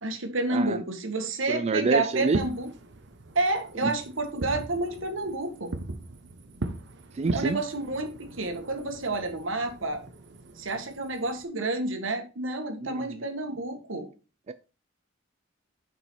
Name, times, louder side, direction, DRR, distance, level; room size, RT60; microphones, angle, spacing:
voice 1, 0.0-2.7 3.3-5.7 7.3-10.0 10.6-14.1, right 2 dB, 80° right, 1.6 m, -30 dB
voice 2, 0.5-0.8 1.5-2.4 3.8-3.9 7.1-7.6 12.8-13.2 14.5-14.6, right 4 dB, 35° right, 0.4 m, -27 dB
Fireworks, 2.2-11.4, right 2 dB, 65° right, 0.9 m, -40 dB
7.1 x 5.4 x 4.4 m
head